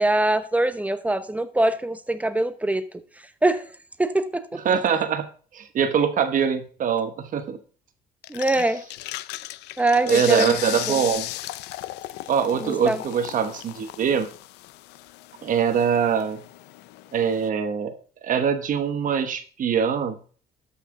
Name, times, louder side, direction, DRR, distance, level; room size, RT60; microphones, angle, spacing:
voice 1, 0.0-2.8 3.4-3.6 4.0-4.4 8.3-8.8 9.8-10.6 10.9-11.0 12.6-13.0, right 2 dB, 10° right, 0.8 m, -23 dB
voice 2, 4.6-5.3 5.5-7.6 8.6-8.7 10.1-11.3 12.3-14.3 15.4-16.4 17.1-18.0 18.2-20.2, right 7 dB, 50° right, 1.1 m, -23 dB
sound 1, 8.2-17.5, left 16 dB, 85° left, 0.5 m, -36 dB
13.0 x 5.8 x 3.7 m
cardioid pair, 110°, 17 cm